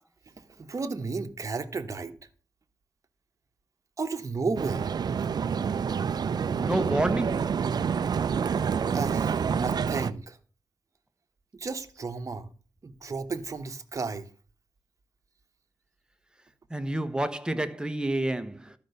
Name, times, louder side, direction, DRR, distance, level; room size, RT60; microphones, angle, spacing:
voice 1, 0.5-2.2 4.0-4.8 8.9-10.4 11.5-12.5 12.8-14.3, right 4 dB, 40° right, 1.2 m, -33 dB
sound 1, 4.6-10.1, right 6 dB, 60° right, 0.5 m, -28 dB
voice 2, 6.6-7.6 16.7-18.7, right 1 dB, 10° right, 1.1 m, -29 dB
12.5 x 5.4 x 6.7 m
cardioid pair, 90°, 8 cm